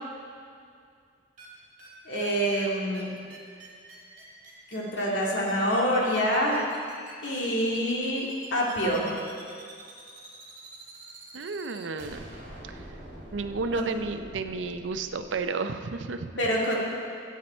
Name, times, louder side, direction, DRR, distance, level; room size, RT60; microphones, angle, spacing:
sound 1, 1.4-1.5 1.8-1.9 2.2-2.3 2.6-2.7 2.9-3.0 3.3-15.4, right 2 dB, 50° right, 2.6 m, -46 dB
voice 1, 2.1-3.1 4.7-6.7 7.2-9.2 13.7-13.9 16.4-16.8, equal, 80° left, -3 dB, 2.2 m, -26 dB
voice 2, 11.3-12.3 12.6-12.9 13.3-16.3, right 4 dB, 85° right, 9 dB, 0.5 m, -32 dB
13.5 x 8.4 x 4.3 m, 2.3 s
head